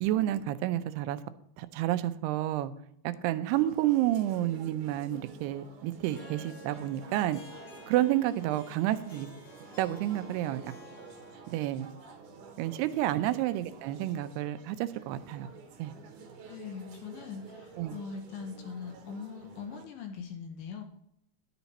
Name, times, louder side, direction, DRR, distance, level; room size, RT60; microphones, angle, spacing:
voice 1, 0.0-1.2 1.6-2.7 3.0-7.4 7.9-9.3 9.8-10.7 11.5-11.9 12.6-15.5 15.8-15.9 17.8-18.0, right 14 dB, 85° right, 12 dB, 2.6 m, -30 dB
sound 1, 3.6-19.9, right 4 dB, 70° right, 2.2 m, -50 dB
Harp, 6.1-11.9, left 2 dB, 45° left, 2.0 m, -52 dB
voice 2, 16.5-20.8, left 6 dB, 75° left, 5 dB, 2.3 m, -41 dB
11.5 x 6.9 x 4.1 m, 0.74 s
omnidirectional pair, 4.6 m